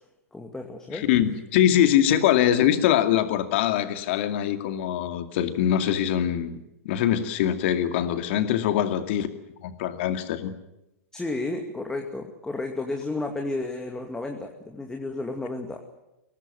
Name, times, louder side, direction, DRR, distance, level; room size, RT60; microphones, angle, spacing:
voice 1, 0.3-1.0 11.1-15.8, left 2 dB, 5° left, 3 dB, 2.3 m, -32 dB
voice 2, 0.9-9.3 9.6-10.5, left 11 dB, 50° left, 8 dB, 2.3 m, -23 dB
23.0 x 18.0 x 9.4 m, 0.92 s
figure-of-eight pair, 105°, 8 cm